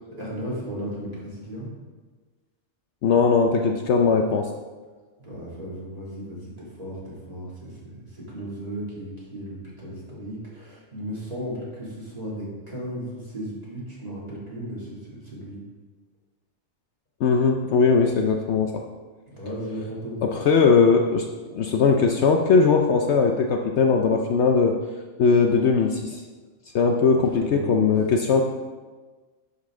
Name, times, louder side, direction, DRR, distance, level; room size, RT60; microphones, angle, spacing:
voice 1, 0.1-1.7 5.2-15.6 19.3-20.2 27.1-28.0, equal, 30° right, -7 dB, 2.8 m, -35 dB
voice 2, 3.0-4.5 17.2-18.7 20.2-21.3 21.5-24.8 25.2-26.2 26.7-28.4, left 5 dB, 65° left, 3 dB, 0.8 m, -19 dB
11.0 x 5.5 x 3.8 m, 1.3 s
omnidirectional pair, 1.4 m